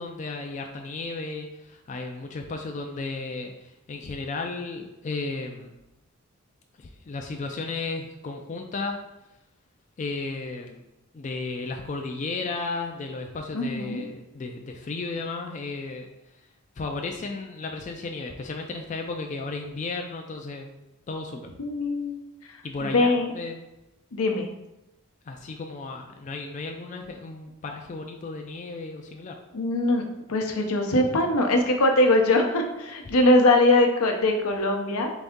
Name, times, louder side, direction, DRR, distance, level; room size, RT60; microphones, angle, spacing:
voice 1, 0.0-5.7 6.8-9.0 10.0-10.8 11.1-16.1 16.3-16.4 16.8-20.7 21.1-21.5 22.6-23.6 25.3-29.4, left 3 dB, 35° left, 3 dB, 0.3 m, -34 dB
voice 2, 13.5-14.0 21.6-22.2 22.8-23.3 24.1-24.5 29.5-35.1, left 2 dB, 85° left, 3 dB, 0.7 m, -22 dB
4.1 x 3.4 x 3.6 m, 0.92 s
head